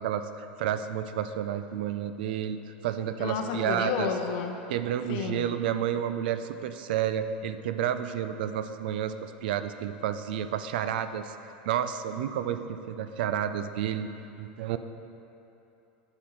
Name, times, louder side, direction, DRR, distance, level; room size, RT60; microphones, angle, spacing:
voice 1, 0.0-4.1 4.7-11.3 11.7-12.6 12.9-14.1 14.4-14.8, right 10 dB, 75° right, 10 dB, 0.4 m, -30 dB
voice 2, 3.2-4.6 5.1-5.5, left 6 dB, 65° left, 4 dB, 0.6 m, -31 dB
8.1 x 7.7 x 3.1 m, 3.0 s
hypercardioid pair, 100°, 5 cm